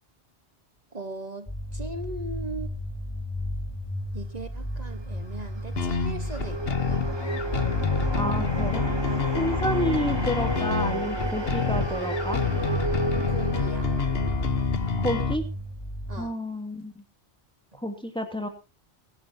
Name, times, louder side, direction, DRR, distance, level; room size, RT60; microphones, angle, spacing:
voice 1, 0.9-2.7 4.1-7.0 13.3-13.9 16.1-16.4, right 2 dB, 40° right, 1.3 m, -39 dB
sound 1, 1.5-16.2, left 1 dB, 20° left, 3.7 m, -33 dB
sound 2, 4.9-15.3, right 1 dB, 25° right, 1.7 m, -33 dB
sound 3, 5.8-15.4, left 6 dB, 60° left, 1.4 m, -28 dB
voice 2, 8.1-8.8 9.3-12.4 15.0-15.4 16.2-16.9 17.8-18.5, equal, 5° left, 2.6 m, -30 dB
22.0 x 11.0 x 2.8 m
omnidirectional pair, 1.1 m